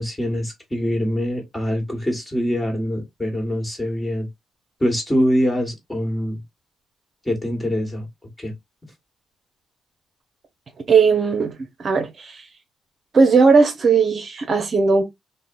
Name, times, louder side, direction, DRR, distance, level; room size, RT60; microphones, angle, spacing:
voice 1, 0.0-4.3 4.8-6.4 7.2-8.1 8.4-8.5, equal, 15° left, 1.4 m, -24 dB
voice 2, 10.9-11.5 11.8-12.3 13.1-15.0, right 4 dB, 50° right, 0.6 m, -17 dB
2.7 x 2.1 x 2.4 m
supercardioid pair, 55°, 0 cm